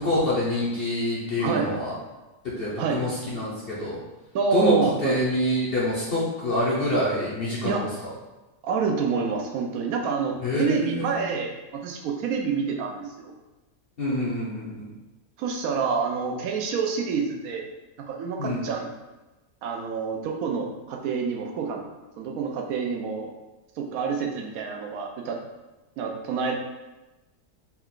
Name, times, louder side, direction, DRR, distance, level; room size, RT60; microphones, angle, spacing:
voice 1, 0.0-1.9 2.6-4.0 4.5-7.9 10.4-11.1 14.0-14.9 18.4-18.6, left 1 dB, 45° left, -7 dB, 0.8 m, -26 dB
voice 2, 1.4-1.7 2.8-3.1 4.3-5.2 7.6-7.9 8.6-13.3 15.4-17.6 18.1-18.9 19.6-21.9 22.2-23.3 23.8-25.4 26.0-26.6, right 5 dB, 70° right, 2 dB, 1.0 m, -27 dB
4.4 x 2.4 x 3.7 m, 1.1 s
omnidirectional pair, 1.7 m